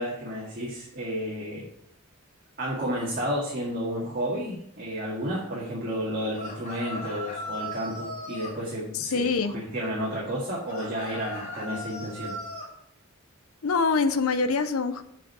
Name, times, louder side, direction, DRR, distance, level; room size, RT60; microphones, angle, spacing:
voice 1, 0.0-1.7 2.6-9.3 9.5-12.3, equal, 40° right, -5 dB, 2.0 m, -31 dB
sound 1, 6.3-8.6 10.7-12.7, left 1 dB, 35° left, 2.7 m, -37 dB
voice 2, 8.9-9.5 13.6-15.0, left 4 dB, 70° left, 8 dB, 0.6 m, -24 dB
7.5 x 5.2 x 6.7 m, 0.73 s
head